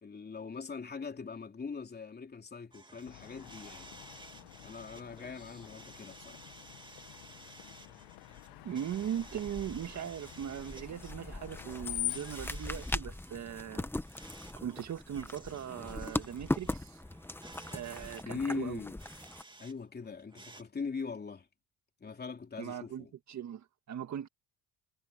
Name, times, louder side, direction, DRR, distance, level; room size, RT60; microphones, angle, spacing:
voice 1, 0.0-3.9 4.6-6.4 18.2-19.0 19.6-21.5 22.0-23.1, left 5 dB, 25° left, 3.4 m, -41 dB
sound 1, 2.7-19.7 20.0-20.6, right 2 dB, 10° right, 2.3 m, -55 dB
Screech, 3.1-12.4, left 18 dB, 80° left, 1.6 m, -45 dB
voice 2, 8.6-13.9 14.6-17.0 17.7-18.8 22.6-24.3, right 9 dB, 45° right, 1.7 m, -39 dB
sound 2, 8.9-19.4, left 1 dB, 5° left, 1.1 m, -40 dB
cardioid pair, 105°, 39 cm